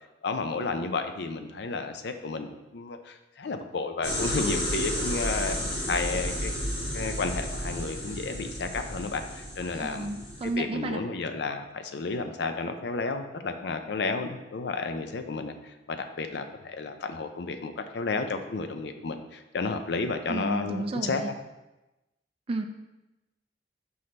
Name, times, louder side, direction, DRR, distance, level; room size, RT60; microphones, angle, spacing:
voice 1, 0.2-5.6 5.9-6.5 6.9-10.1 10.4-15.5 15.9-21.3, left 4 dB, 65° left, 7 dB, 0.5 m, -32 dB
sound 1, 4.0-10.5, equal, 30° left, 1.8 m, -32 dB
voice 2, 9.7-11.0 20.3-21.3 22.5-22.6, right 2 dB, 30° right, 6 dB, 0.4 m, -32 dB
5.9 x 5.5 x 3.2 m, 1.0 s
head